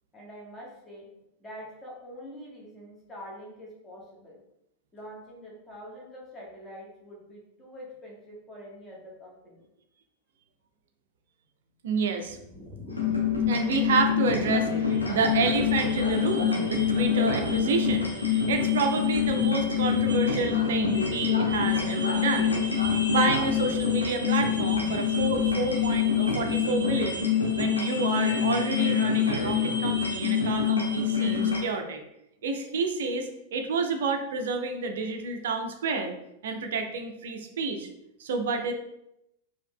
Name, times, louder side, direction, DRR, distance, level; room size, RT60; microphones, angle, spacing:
voice 1, 0.1-1.1 1.4-4.4 4.9-9.6, equal, 15° left, -4 dB, 1.3 m, -45 dB
voice 2, 11.8-12.4 13.5-22.6 23.1-27.3 27.6-32.0 32.4-36.1 36.4-37.9 38.2-38.7, right 4 dB, 60° right, 5 dB, 0.4 m, -29 dB
sound 1, 12.1-27.3, left 1 dB, 25° right, 0.8 m, -43 dB
sound 2, 12.9-31.6, left 7 dB, 80° left, 0.8 m, -26 dB
4.6 x 2.8 x 2.2 m, 0.82 s
figure-of-eight pair, 90°, 0 cm